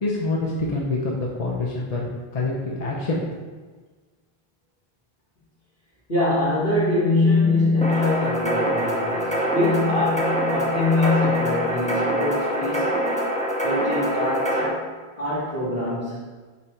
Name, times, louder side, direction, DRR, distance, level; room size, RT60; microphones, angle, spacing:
voice 1, 0.0-2.1 2.3-3.4, left 2 dB, 40° left, -3 dB, 0.8 m, -26 dB
voice 2, 6.1-12.9 13.6-14.8 15.2-16.2, left 2 dB, 65° left, -8 dB, 2.2 m, -23 dB
sound 1, 7.8-14.7, equal, 5° left, 0.9 m, -24 dB
5.1 x 4.2 x 4.4 m, 1.4 s
omnidirectional pair, 1.0 m